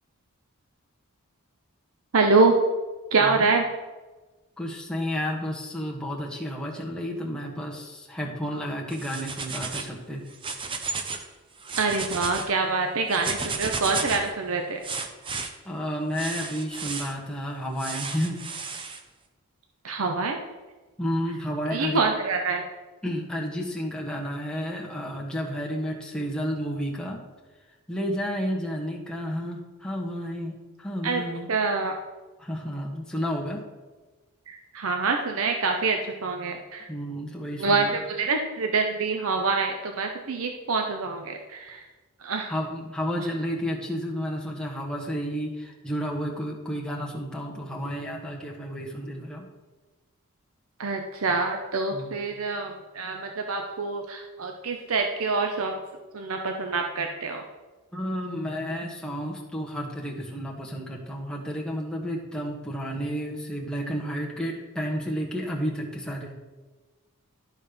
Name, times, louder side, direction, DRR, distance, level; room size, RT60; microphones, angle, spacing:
voice 1, 2.1-2.6 3.1-3.7 11.8-14.8 19.8-20.4 21.7-22.7 31.0-31.2 31.5-31.9 34.5-36.9 37.6-41.9 42.2-42.5 50.8-55.8 56.1-57.4, right 4 dB, 70° right, 4 dB, 0.7 m, -26 dB
voice 2, 3.2-3.5 4.6-10.2 15.6-18.4 19.9-20.0 21.0-22.0 23.0-27.2 27.9-31.5 32.4-33.6 36.9-38.0 42.5-49.5 51.9-52.1 57.9-66.3, equal, 5° left, -2 dB, 1.3 m, -31 dB
sound 1, 8.9-9.9 10.3-11.3 11.6-12.5 13.1-14.3 14.8-15.5 16.1-17.1 17.8-19.0, right 4 dB, 25° right, 0.6 m, -33 dB
12.0 x 4.3 x 5.2 m, 1.2 s
head